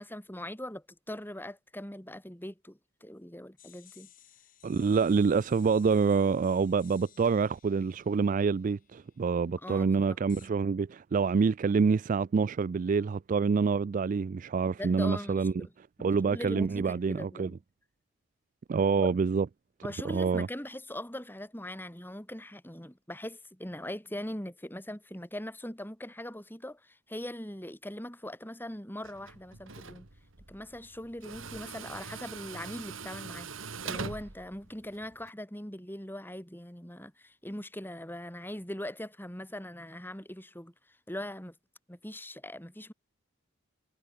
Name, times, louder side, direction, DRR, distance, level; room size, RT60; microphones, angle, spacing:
voice 1, 0.0-4.1 9.6-10.5 14.8-15.7 16.2-17.6 19.0-19.1 19.8-30.1 30.5-41.5 41.9-42.9, left 1 dB, 10° left, 4.2 m, -41 dB
sound 1, 3.6-9.3 10.3-10.5, left 12 dB, 40° left, 4.5 m, -59 dB
voice 2, 4.6-15.7 16.0-17.5 18.7-19.5 20.0-20.5, right 5 dB, 40° right, 0.3 m, -27 dB
Tools, 29.0-35.3, right 4 dB, 75° right, 2.7 m, -43 dB
head